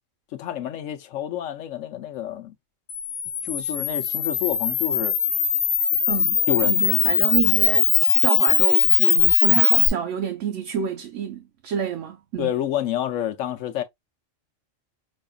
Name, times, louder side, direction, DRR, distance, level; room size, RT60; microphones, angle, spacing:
voice 1, 0.3-2.5 3.4-5.1 6.5-6.7 12.4-13.8, left 11 dB, 85° left, 1.0 m, -28 dB
Camera, 2.9-9.9, left 7 dB, 50° left, 0.6 m, -20 dB
voice 2, 6.1-12.5, right 9 dB, 80° right, 1.0 m, -29 dB
6.2 x 2.5 x 2.2 m
omnidirectional pair, 1.3 m